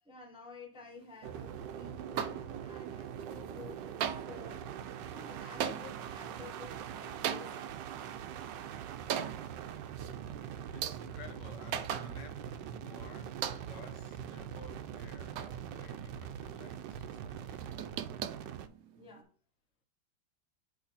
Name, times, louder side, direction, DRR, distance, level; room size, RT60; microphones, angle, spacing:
voice 1, 0.0-4.7 5.0-7.8 15.3-15.5 18.9-19.3, left 3 dB, 5° right, 0.7 m, -52 dB
sound 1, 1.2-18.7, right 9 dB, 85° right, 1.3 m, -43 dB
sound 2, 2.2-2.9 3.2-3.7 4.0-12.6 12.9-13.0 13.4-14.0 14.4-16.2 16.5-16.9 17.3-19.2, right 8 dB, 65° right, 0.9 m, -41 dB
voice 2, 10.7-17.8, left 4 dB, 75° left, 1.7 m, -55 dB
8.0 x 3.2 x 4.1 m
omnidirectional pair, 1.9 m